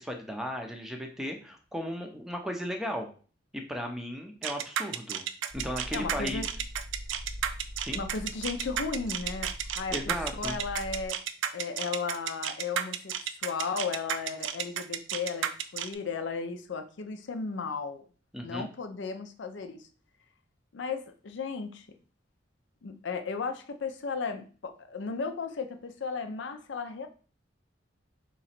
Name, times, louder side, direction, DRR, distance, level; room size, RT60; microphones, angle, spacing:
voice 1, 0.0-3.1 3.5-5.2 5.5-6.4 7.8-8.0 9.9-10.5 18.3-18.7, equal, ahead, 0.5 m, -35 dB
sound 1, 4.4-15.9, right 9 dB, 80° right, 0.4 m, -32 dB
sound 2, 5.5-11.1, equal, 40° left, 0.8 m, -42 dB
voice 2, 5.9-6.5 7.9-9.5 9.8-11.2 11.5-18.0 18.4-19.9 20.7-21.9 22.8-27.1, left 5 dB, 70° left, 0.5 m, -35 dB
3.8 x 3.0 x 4.3 m
head